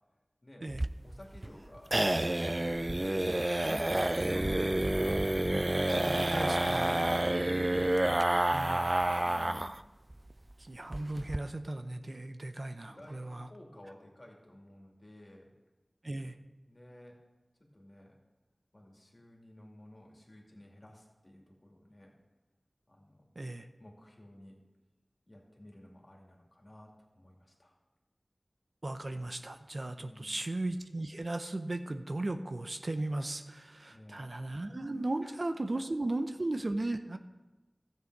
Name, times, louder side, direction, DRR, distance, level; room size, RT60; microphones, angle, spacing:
sound 1, 0.7-9.8 10.1-10.2 10.5-10.6 10.9-11.4, right 1 dB, 35° right, 0.3 m, -29 dB
voice 1, 1.0-5.3 6.8-8.0 9.1-9.8 12.8-15.5 16.6-17.2 17.7-18.2 18.7-22.1 22.9-23.3 23.8-24.6 25.3-27.8 29.9-30.4 33.9-34.2 35.2-35.4 35.7-35.8 36.3-36.4, left 1 dB, 55° left, -1 dB, 2.2 m, -53 dB
voice 2, 5.9-6.9 8.5-8.9 10.6-13.5 16.0-16.3 23.4-23.7 28.8-37.2, right 2 dB, 65° right, 8 dB, 0.6 m, -36 dB
13.0 x 7.5 x 4.7 m, 1.2 s
wide cardioid pair, 45°, 0 cm